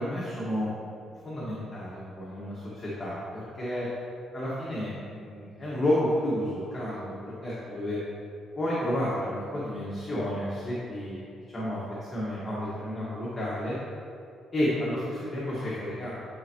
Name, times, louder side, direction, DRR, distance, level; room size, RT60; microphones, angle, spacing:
voice 1, 0.0-3.9 4.3-8.0 8.6-11.8 12.1-13.8 14.5-16.1, left 1 dB, 25° left, -8 dB, 1.6 m, -31 dB
10.0 x 4.6 x 3.0 m, 2.5 s
cardioid pair, 90°, 0 cm